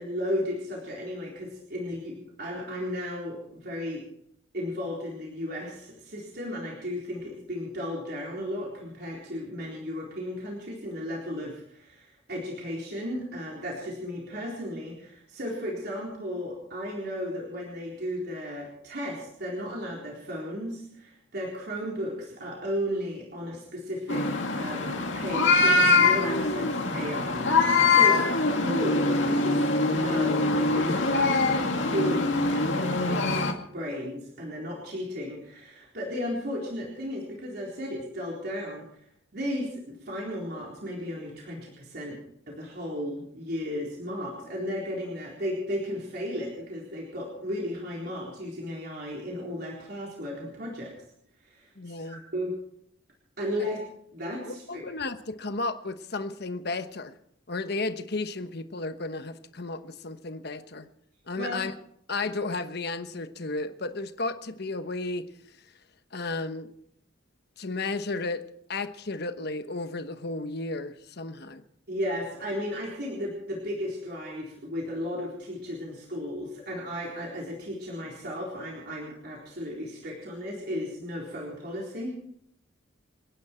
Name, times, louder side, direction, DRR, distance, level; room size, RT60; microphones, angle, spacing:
voice 1, 0.0-4.0 4.5-28.3 28.6-33.4 33.7-39.0 39.3-50.9 51.4-52.6 53.4-53.8 54.1-54.8 61.3-61.6 71.9-82.1, equal, 55° right, 4.0 m, -35 dB
sound 1, 24.1-33.5, left 3 dB, 70° left, 2.3 m, -23 dB
voice 2, 51.8-52.2 53.6-53.7 54.4-57.1 57.5-60.9 61.3-61.7 62.1-65.3 66.1-66.7 67.6-68.4 68.7-71.6, left 3 dB, 55° left, 1.1 m, -33 dB
29.0 x 10.5 x 4.5 m
head